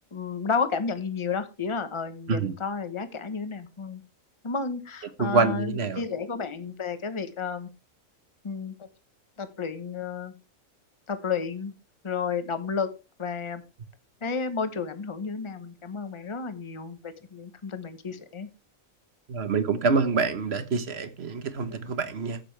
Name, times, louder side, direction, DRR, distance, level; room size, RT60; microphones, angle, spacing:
voice 1, 0.1-4.0 4.4-7.7 8.4-8.9 9.4-10.3 11.1-11.7 12.0-12.9 13.2-13.6 14.2-18.5 21.7-21.8, left 5 dB, 25° left, 1.0 m, -32 dB
voice 2, 5.2-6.0 19.3-22.4, right 4 dB, 55° right, 1.3 m, -26 dB
13.0 x 8.5 x 3.3 m
omnidirectional pair, 1.4 m